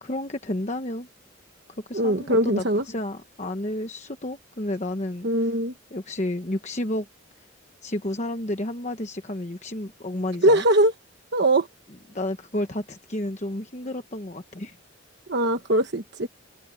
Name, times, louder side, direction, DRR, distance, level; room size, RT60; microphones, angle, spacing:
voice 1, 0.0-1.1 1.9-5.5 5.9-7.1 7.8-10.6 12.1-14.8, left 1 dB, 35° left, 1.1 m, -31 dB
voice 2, 1.9-2.8 5.2-5.7 10.4-10.9 11.3-11.7 15.3-16.3, right 1 dB, 55° right, 1.2 m, -21 dB
head